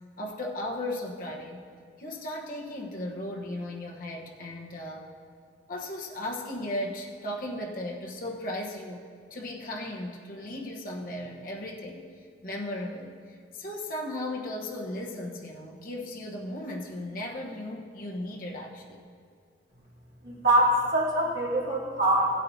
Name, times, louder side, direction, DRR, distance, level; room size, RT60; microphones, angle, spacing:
voice 1, 0.2-1.6 2.0-5.1 5.7-12.1 12.4-13.1 13.5-19.0, left 1 dB, 50° left, -2 dB, 1.2 m, -36 dB
voice 2, 20.2-22.3, right 1 dB, 75° right, -7 dB, 3.1 m, -24 dB
17.0 x 8.8 x 2.8 m, 2.1 s
head